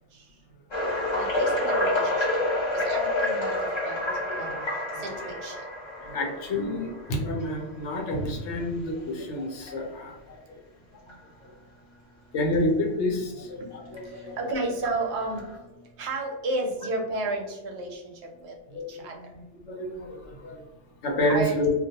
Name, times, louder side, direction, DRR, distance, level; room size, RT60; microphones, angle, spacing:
sound 1, 0.7-7.6 8.2-8.4 9.0-9.1 9.6-9.7 11.1-11.2 14.0-14.1 14.8-15.6, left 1 dB, 35° left, 0.5 m, -29 dB
voice 1, 1.1-2.3 2.7-4.0 4.3-4.6 5.0-5.6 13.6-18.1 18.4-18.6 18.9-19.2 21.3-21.6, right 2 dB, 70° right, 1 dB, 0.8 m, -32 dB
voice 2, 5.9-10.6 11.4-11.5 12.3-14.4 18.7-20.6 21.0-21.7, left 1 dB, 75° left, 0 dB, 0.9 m, -29 dB
2.3 x 2.3 x 2.7 m, 1.0 s
omnidirectional pair, 1.2 m